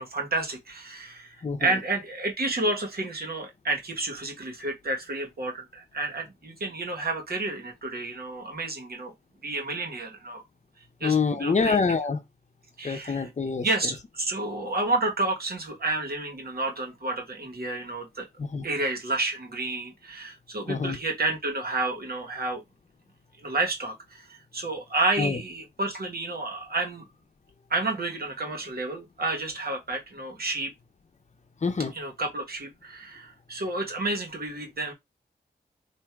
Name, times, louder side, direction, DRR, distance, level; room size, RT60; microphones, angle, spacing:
voice 1, 0.0-9.1 9.4-10.4 11.0-11.8 12.8-13.3 13.6-18.3 18.6-22.6 23.4-27.1 27.7-30.7 31.9-34.9, right 2 dB, 65° right, 1.4 m, -30 dB
voice 2, 1.4-1.7 11.0-12.2 12.8-13.7 18.4-18.7 20.7-21.0 25.2-25.4 31.6-31.9, left 5 dB, 45° left, 0.7 m, -26 dB
3.5 x 2.7 x 4.6 m
wide cardioid pair, 105°, 17 cm